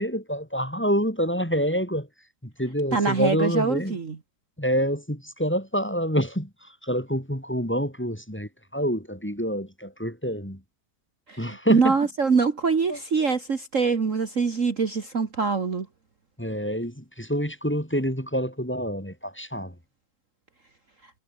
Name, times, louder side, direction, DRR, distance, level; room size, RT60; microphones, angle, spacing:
voice 1, 0.0-2.1 2.4-4.0 4.6-10.6 11.4-11.9 12.9-13.0 16.4-19.7, equal, 5° left, 4.5 m, -27 dB
voice 2, 2.9-4.2 11.3-15.9, right 5 dB, 45° right, 2.1 m, -24 dB
omnidirectional pair, 2.0 m